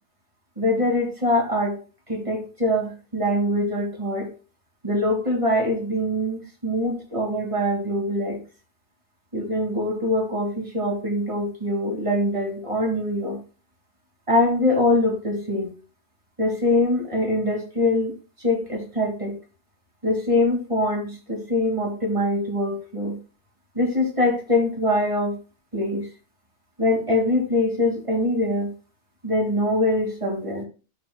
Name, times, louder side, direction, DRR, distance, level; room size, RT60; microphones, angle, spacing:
voice 1, 0.6-1.8 2.1-4.3 4.8-8.4 9.3-13.4 14.3-15.7 16.4-18.1 18.4-19.4 20.0-23.2 23.8-25.4 25.7-26.1 26.8-28.7 29.2-30.6, left 1 dB, 25° right, 0 dB, 2.3 m, -23 dB
11.0 x 6.2 x 2.2 m, 0.33 s
omnidirectional pair, 1.4 m